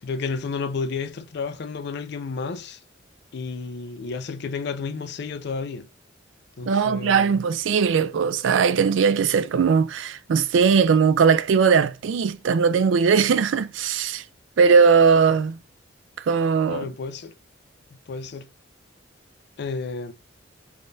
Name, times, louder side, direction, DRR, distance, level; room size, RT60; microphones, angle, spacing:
voice 1, 0.0-2.8 3.3-5.9 6.6-7.4 16.7-17.3 18.1-18.5 19.6-20.1, left 4 dB, 55° left, 0.4 m, -31 dB
voice 2, 6.7-14.2 14.6-15.6 16.3-16.8, right 6 dB, 75° right, 0.4 m, -19 dB
3.5 x 3.3 x 2.6 m
head